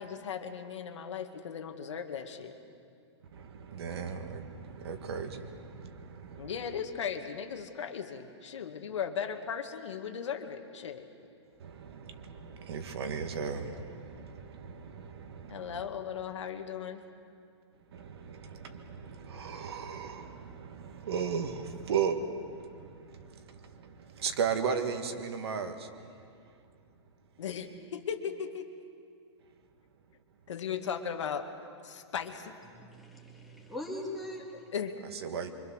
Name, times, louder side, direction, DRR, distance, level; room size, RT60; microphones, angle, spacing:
voice 1, 0.0-2.5 6.4-11.0 15.5-17.0 27.4-28.7 30.5-31.5 31.8-32.5 34.5-34.9, left 7 dB, 85° left, 2.0 m, -37 dB
voice 2, 3.3-6.5 11.6-15.9 17.9-25.9 35.1-35.5, right 6 dB, 60° right, 1.9 m, -36 dB
voice 3, 32.7-34.7, left 1 dB, ahead, 2.2 m, -41 dB
25.0 x 24.5 x 6.5 m
hypercardioid pair, 175°, 15 cm